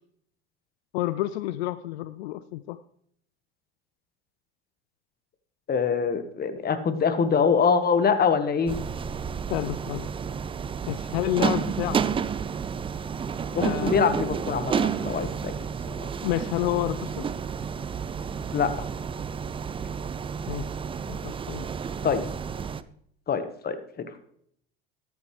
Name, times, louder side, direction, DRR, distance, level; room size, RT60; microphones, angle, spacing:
voice 1, 0.9-2.8 9.5-10.1 10.9-12.1 13.6-14.2 16.2-17.3 20.5-20.7 21.1-21.6, left 15 dB, 75° left, 15 dB, 0.5 m, -29 dB
voice 2, 5.7-8.8 13.5-15.5 15.9-16.1 18.5-18.9 22.0-22.2 23.3-24.2, left 6 dB, 30° left, 10 dB, 1.4 m, -24 dB
sound 1, 8.7-22.8, right 7 dB, 15° right, 0.4 m, -31 dB
13.5 x 9.3 x 3.2 m, 0.66 s
hypercardioid pair, 90°, 33 cm